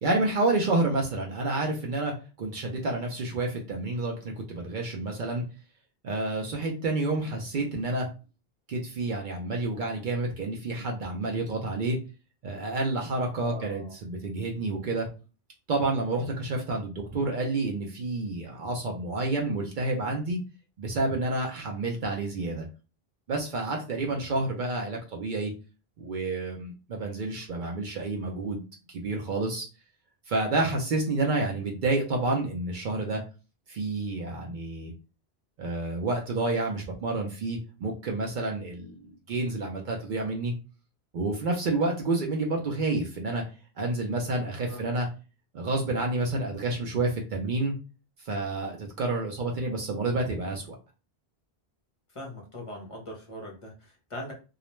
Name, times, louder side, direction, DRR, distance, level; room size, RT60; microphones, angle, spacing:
voice 1, 0.0-5.4 6.0-8.1 8.7-12.0 12.4-15.1 15.7-20.4 20.8-22.7 23.3-25.5 26.0-28.6 28.9-29.7 30.3-33.2 33.7-34.9 35.6-40.5 41.1-43.4 43.8-45.1 45.5-47.7 48.2-50.8, right 2 dB, 60° right, 1 dB, 0.6 m, -29 dB
voice 2, 13.4-14.0 24.0-24.4 44.6-44.8 52.1-54.3, left 1 dB, 35° left, -1 dB, 0.7 m, -41 dB
2.4 x 2.1 x 3.0 m, 0.33 s
omnidirectional pair, 1.1 m